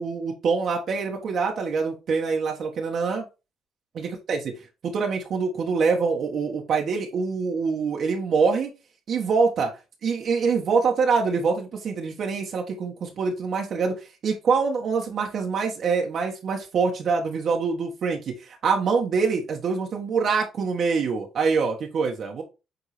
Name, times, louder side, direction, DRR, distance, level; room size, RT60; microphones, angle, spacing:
voice 1, 0.0-3.2 3.9-4.5 4.8-8.7 9.1-9.7 10.0-22.4, right 5 dB, 60° right, 1 dB, 1.5 m, -25 dB
8.0 x 3.7 x 3.3 m, 0.28 s
cardioid pair, 95°, 0 cm